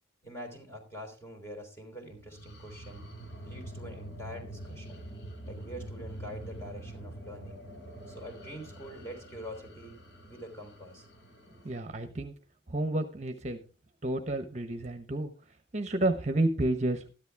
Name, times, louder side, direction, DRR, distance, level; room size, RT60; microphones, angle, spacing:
voice 1, 0.2-3.0 3.4-5.1 5.4-7.6 8.1-11.1, equal, 15° left, 1 dB, 3.5 m, -45 dB
sound 1, 2.1-11.8, right 1 dB, 70° left, 4.4 m, -45 dB
voice 2, 11.6-12.3 12.7-13.6 14.0-15.3 15.7-17.1, right 1 dB, 40° right, 7 dB, 1.0 m, -30 dB
13.5 x 11.5 x 3.5 m, 0.34 s
head